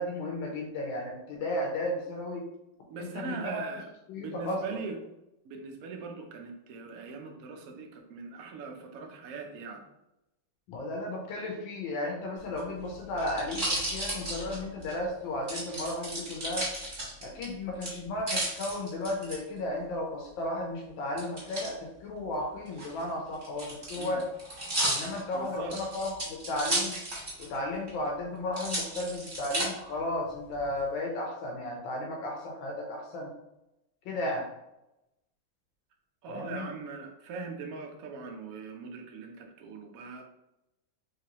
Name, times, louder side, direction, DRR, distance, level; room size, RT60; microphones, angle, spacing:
voice 1, 0.0-2.4 3.0-3.6 4.1-4.8 10.7-16.7 17.2-24.2 24.9-27.0 27.4-33.3 34.0-34.4 36.3-36.7, left 1 dB, 80° left, 0 dB, 1.4 m, -34 dB
voice 2, 2.9-3.9 4.2-5.0 5.4-9.8 24.0-24.2 25.3-25.8 36.2-40.2, right 4 dB, 70° right, 2 dB, 0.8 m, -41 dB
sound 1, 12.4-15.0 15.5-17.4 17.8-19.4 21.2-21.7 22.7-27.6 27.9-28.0 28.5-29.7 30.3-30.8, right 1 dB, 25° right, 1.4 m, -33 dB
3.7 x 3.1 x 2.9 m, 0.89 s
omnidirectional pair, 2.2 m